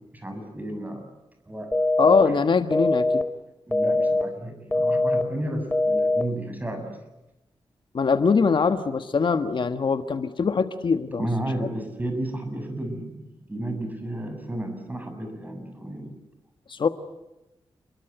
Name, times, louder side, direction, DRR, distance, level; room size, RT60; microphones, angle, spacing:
voice 1, 0.1-1.1 1.5-2.3 3.7-7.0 11.2-16.1, right 1 dB, 20° right, 6 dB, 7.2 m, -32 dB
sound 1, 1.7-2.2 2.7-3.2 3.7-4.2 4.7-5.2 5.7-6.2, left 2 dB, 15° left, 2.4 m, -22 dB
voice 2, 2.0-3.2 7.9-11.3 16.7-16.9, left 5 dB, 60° left, 9 dB, 1.5 m, -22 dB
29.5 x 22.5 x 8.1 m, 0.97 s
wide cardioid pair, 90°, 9 cm